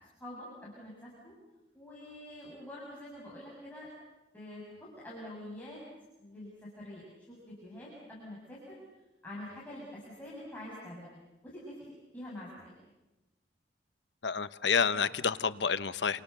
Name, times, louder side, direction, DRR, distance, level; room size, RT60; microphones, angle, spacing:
voice 1, 0.2-1.3 1.7-3.9 4.3-5.8 6.2-8.8 9.2-12.8, left 1 dB, 10° left, -7 dB, 7.3 m, -46 dB
voice 2, 14.2-16.2, left 6 dB, 75° left, 13 dB, 0.9 m, -29 dB
28.5 x 28.0 x 6.8 m, 1.0 s
head